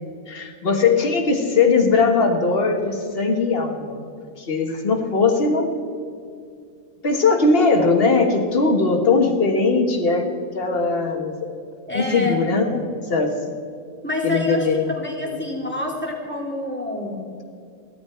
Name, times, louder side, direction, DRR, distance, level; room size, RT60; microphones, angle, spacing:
voice 1, 0.3-4.0 4.4-5.7 7.0-10.2 10.5-11.5 11.9-12.8 13.1-13.3 14.2-14.7 15.2-15.4, left 4 dB, 50° left, 3 dB, 1.7 m, -19 dB
voice 2, 11.9-12.4 14.0-17.2, left 1 dB, 10° left, -3 dB, 2.9 m, -27 dB
16.5 x 12.5 x 4.5 m, 2.4 s
omnidirectional pair, 1.3 m